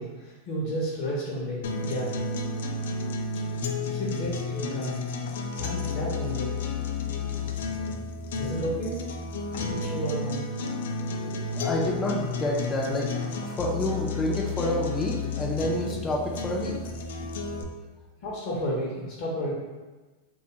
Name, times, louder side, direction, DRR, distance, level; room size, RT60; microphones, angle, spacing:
voice 1, 0.0-2.2 3.9-5.0 5.6-6.5 8.4-9.0 9.5-10.4 18.2-19.5, equal, 55° left, -5 dB, 0.7 m, -32 dB
sound 1, 1.6-17.6, left 4 dB, 80° left, 0.3 m, -32 dB
voice 2, 11.1-13.1 13.4-16.8 17.1-17.3, left 1 dB, 20° left, -2 dB, 0.4 m, -29 dB
2.5 x 2.3 x 2.8 m, 1.2 s
supercardioid pair, 125°, 0 cm